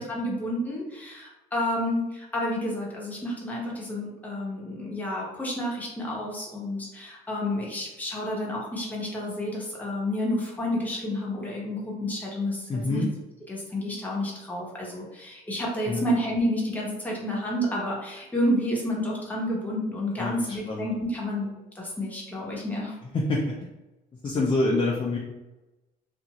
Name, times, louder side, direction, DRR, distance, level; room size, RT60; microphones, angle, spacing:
voice 1, 0.0-13.0 13.5-21.5 21.7-23.0, left 1 dB, 10° left, -4 dB, 0.9 m, -30 dB
voice 2, 12.7-13.1 15.9-16.1 20.2-20.8 23.1-23.6 24.2-25.2, left 2 dB, 30° left, -2 dB, 0.5 m, -26 dB
2.6 x 2.5 x 2.9 m, 1.0 s
cardioid pair, 110°, 17 cm